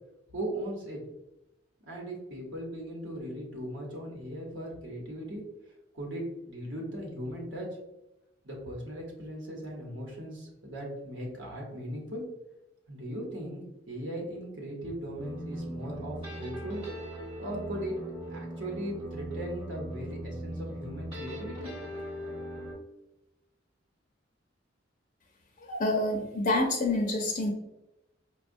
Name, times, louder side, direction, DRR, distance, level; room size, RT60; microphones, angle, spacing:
voice 1, 0.3-1.0 1.9-5.4 5.9-7.7 8.4-12.2 12.9-16.8 17.4-17.9 18.3-21.7, right 1 dB, 80° right, -1 dB, 1.0 m, -38 dB
sound 1, 15.2-22.7, right 1 dB, 30° right, 1.1 m, -39 dB
voice 2, 25.7-27.5, left 2 dB, 45° left, 1 dB, 0.6 m, -27 dB
4.7 x 2.2 x 2.5 m, 0.94 s
head